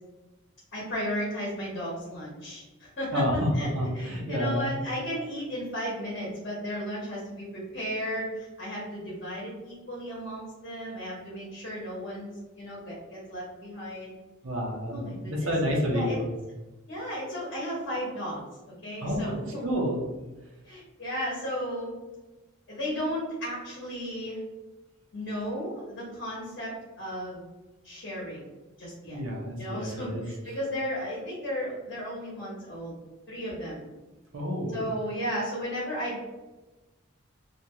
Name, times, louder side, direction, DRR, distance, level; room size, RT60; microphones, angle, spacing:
voice 1, 0.7-3.2 3.6-3.7 3.9-12.3 12.6-14.1 14.9-15.5 15.9-16.2 16.9-18.4 18.8-19.6 20.6-21.9 22.7-24.4 25.1-27.4 27.8-28.5 28.8-29.2 29.6-32.9 33.3-33.8 34.7-36.2, equal, 50° left, -5 dB, 0.9 m, -34 dB
voice 2, 3.1-4.8 14.4-16.3 19.0-19.3 19.6-20.0 29.1-30.2 34.3-34.9, equal, 70° right, -3 dB, 0.7 m, -29 dB
2.5 x 2.2 x 2.9 m, 1.1 s
head